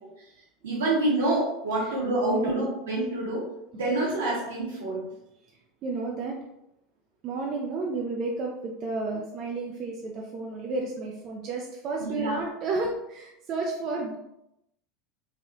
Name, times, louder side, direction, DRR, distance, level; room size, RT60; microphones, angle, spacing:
voice 1, 0.6-3.4 3.7-5.0 12.0-12.4, right 2 dB, 85° right, -4 dB, 1.3 m, -27 dB
voice 2, 2.2-2.5 5.8-6.4 7.2-14.2, right 3 dB, 50° right, -1 dB, 0.5 m, -32 dB
3.3 x 2.4 x 2.6 m, 0.84 s
hypercardioid pair, 90°, 0 cm